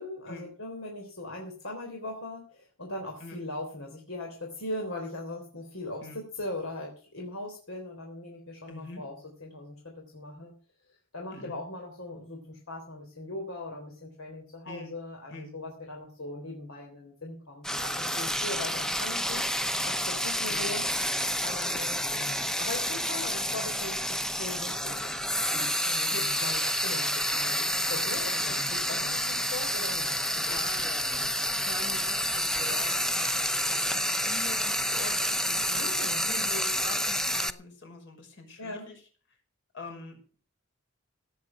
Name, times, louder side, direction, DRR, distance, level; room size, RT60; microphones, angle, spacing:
voice 1, 0.0-10.5 11.1-20.8 21.4-22.0 22.6-25.1 25.5-28.4 28.7-30.6 35.7-36.5 38.6-38.9, left 2 dB, 75° left, 1 dB, 3.7 m, -40 dB
voice 2, 8.7-9.0 11.3-11.6 14.6-14.9 15.3-15.5 20.4-20.7 22.1-22.4 26.1-26.4 28.4-29.4 30.3-35.8 36.2-39.0 39.7-40.4, left 3 dB, 60° left, 3 dB, 5.8 m, -44 dB
Frying (food), 17.6-37.5, equal, 5° left, 0.8 m, -29 dB
17.0 x 8.9 x 6.7 m, 0.41 s
head